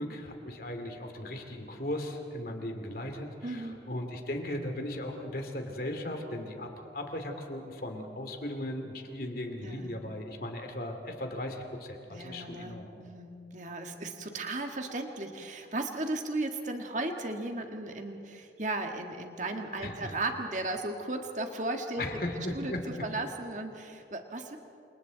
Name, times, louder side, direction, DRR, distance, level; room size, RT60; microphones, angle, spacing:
voice 1, 0.0-12.9 19.8-20.1 22.0-23.0, left 1 dB, 50° left, 4 dB, 2.6 m, -37 dB
voice 2, 3.4-3.8 9.6-10.1 12.1-22.1 22.5-22.7 23.0-24.6, right 2 dB, 40° right, 4 dB, 1.8 m, -36 dB
29.0 x 27.0 x 4.1 m, 2.7 s
head